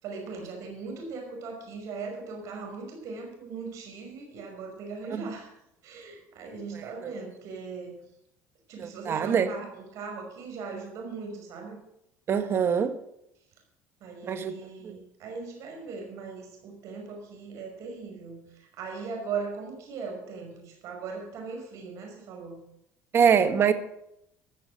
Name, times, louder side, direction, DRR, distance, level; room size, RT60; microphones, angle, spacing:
voice 1, 0.0-5.5 5.8-8.0 8.7-11.8 14.0-22.7, right 4 dB, 60° right, 2 dB, 5.4 m, -39 dB
voice 2, 8.8-9.5 12.3-12.9 14.3-14.5 14.8-14.9 23.1-23.7, right 7 dB, 45° right, 10 dB, 1.5 m, -23 dB
15.0 x 6.8 x 7.9 m, 0.79 s
supercardioid pair, 100°, 6 cm